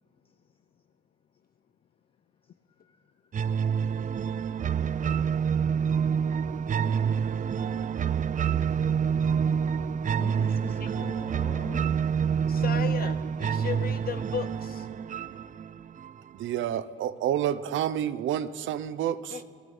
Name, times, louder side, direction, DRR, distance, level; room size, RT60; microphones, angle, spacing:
sound 1, 3.3-16.3, right 7 dB, 40° right, 0.5 m, -27 dB
voice 1, 5.0-6.1 10.2-11.8, left 2 dB, 30° left, 2 dB, 3.3 m, -44 dB
voice 2, 12.5-14.9 19.3-19.4, left 8 dB, 50° left, 11 dB, 0.7 m, -35 dB
voice 3, 16.3-19.4, right 10 dB, 75° right, 14 dB, 0.8 m, -29 dB
26.5 x 18.5 x 5.5 m, 2.4 s
cardioid pair, 90°, 20 cm